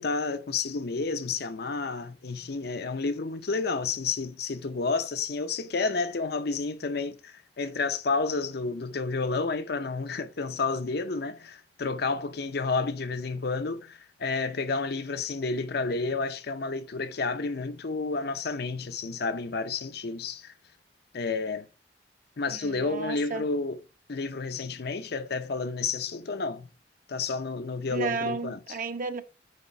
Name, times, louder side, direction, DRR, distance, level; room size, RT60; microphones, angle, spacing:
voice 1, 0.0-20.5 21.1-21.7 22.4-23.8 24.1-26.7 27.1-28.6, left 4 dB, 65° left, 0.6 m, -30 dB
voice 2, 22.5-23.5 27.9-29.2, right 3 dB, 50° right, 0.9 m, -33 dB
9.3 x 3.5 x 4.3 m
head